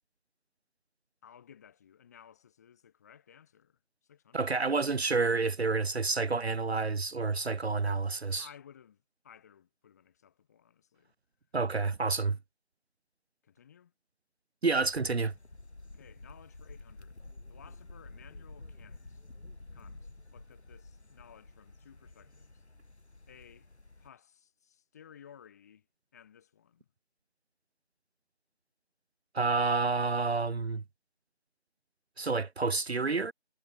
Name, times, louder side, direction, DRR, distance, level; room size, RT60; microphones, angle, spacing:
voice 1, 1.2-4.6 8.4-11.1 13.4-13.9 15.8-17.2 17.5-19.2 19.7-22.6 23.3-23.7 24.0-25.9 26.1-26.9, left 8 dB, 15° left, 5.7 m, -57 dB
voice 2, 4.3-8.5 11.5-12.4 14.6-15.3 29.3-30.8 32.2-33.3, right 4 dB, 70° right, 0.9 m, -29 dB
sound 1, 14.7-24.1, left 2 dB, 75° left, 3.4 m, -51 dB
figure-of-eight pair, 170°, 34 cm